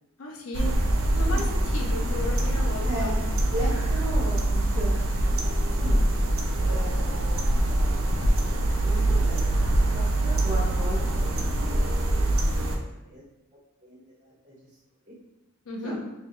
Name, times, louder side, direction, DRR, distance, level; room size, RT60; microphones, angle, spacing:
voice 1, 0.2-0.8 1.1-3.1 15.7-16.0, left 1 dB, 85° left, 0 dB, 0.7 m, -35 dB
sound 1, 0.5-12.8, right 1 dB, 75° right, 0.5 m, -24 dB
voice 2, 2.8-6.1 6.7-7.5 8.8-11.0 11.3-11.9 12.3-12.5 13.0-13.2 13.8-14.6 15.8-16.0, equal, 35° right, -8 dB, 1.4 m, -37 dB
5.2 x 2.8 x 2.2 m, 0.99 s
head